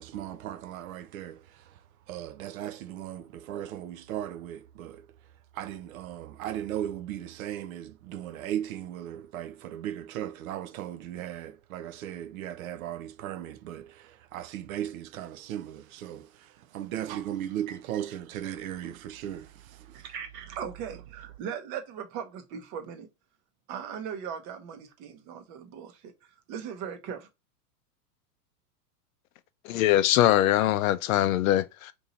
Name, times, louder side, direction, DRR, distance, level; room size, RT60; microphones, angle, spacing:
voice 1, 0.0-5.1 5.5-20.1, right 11 dB, 60° right, 0.5 m, -37 dB
voice 2, 19.9-23.1 23.7-26.1 26.5-27.3, right 8 dB, 40° right, 0.9 m, -38 dB
voice 3, 29.6-31.9, left 13 dB, 60° left, 0.5 m, -22 dB
2.8 x 2.7 x 3.9 m
hypercardioid pair, 115°, 47 cm